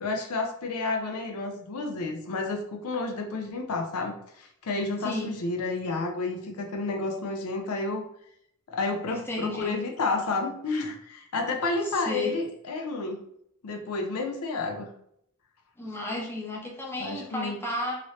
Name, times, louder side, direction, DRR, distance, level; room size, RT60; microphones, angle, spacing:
voice 1, 0.0-8.0 8.7-13.2 13.6-14.9 17.0-17.6, left 3 dB, 70° left, 3 dB, 0.5 m, -30 dB
voice 2, 9.1-9.8 12.1-12.3 15.8-18.0, left 2 dB, 10° left, -2 dB, 0.7 m, -32 dB
2.9 x 2.7 x 3.1 m, 0.72 s
head